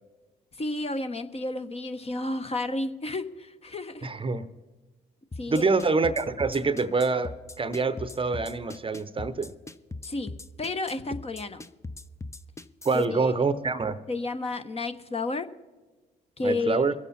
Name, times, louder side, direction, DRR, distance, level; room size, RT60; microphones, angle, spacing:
voice 1, 0.6-4.1 5.4-5.7 10.0-10.3 10.6-11.6 12.9-13.3 14.1-15.5 16.4-16.8, left 2 dB, 30° left, 8 dB, 1.1 m, -31 dB
voice 2, 4.0-4.5 5.5-9.5 12.8-14.0 16.4-16.9, right 4 dB, 30° right, 14 dB, 0.8 m, -26 dB
sound 1, 5.3-13.1, left 2 dB, 15° left, 0.6 m, -39 dB
22.5 x 8.1 x 4.2 m, 1.2 s
hypercardioid pair, 55°, 19 cm